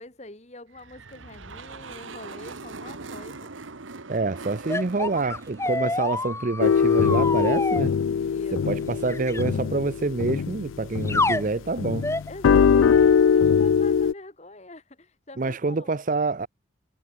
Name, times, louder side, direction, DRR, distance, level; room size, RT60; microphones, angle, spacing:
voice 1, 0.0-3.5 8.2-8.8 12.3-16.0, left 2 dB, 35° left, 2.0 m, -44 dB
sound 1, 0.7-7.2, right 3 dB, 85° right, 1.4 m, -42 dB
voice 2, 4.1-7.9 8.5-12.1 15.4-16.5, right 3 dB, 40° right, 0.6 m, -27 dB
sound 2, 4.7-7.8 9.1-9.4 11.1-11.5 12.0-12.3, left 2 dB, 15° left, 1.2 m, -27 dB
sound 3, 6.6-11.5 11.8-14.1, left 6 dB, 85° left, 0.4 m, -21 dB
head